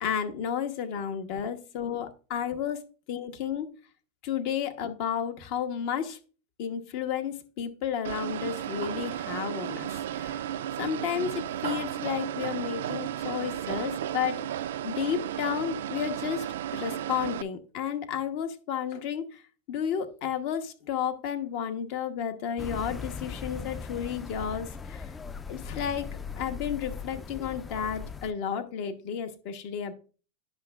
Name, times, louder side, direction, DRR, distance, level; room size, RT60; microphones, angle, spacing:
voice 1, 0.0-2.8 3.1-3.7 4.2-6.2 6.6-10.4 10.8-14.4 14.8-16.5 16.7-19.4 19.7-25.1 25.5-26.1 26.4-29.9, left 8 dB, 60° left, 9 dB, 1.0 m, -32 dB
sound 1, 8.0-17.4, right 11 dB, 80° right, 0.3 m, -34 dB
sound 2, 22.6-28.3, left 5 dB, 20° left, 0.4 m, -39 dB
10.0 x 5.8 x 2.3 m, 0.38 s
hypercardioid pair, 110°, 0 cm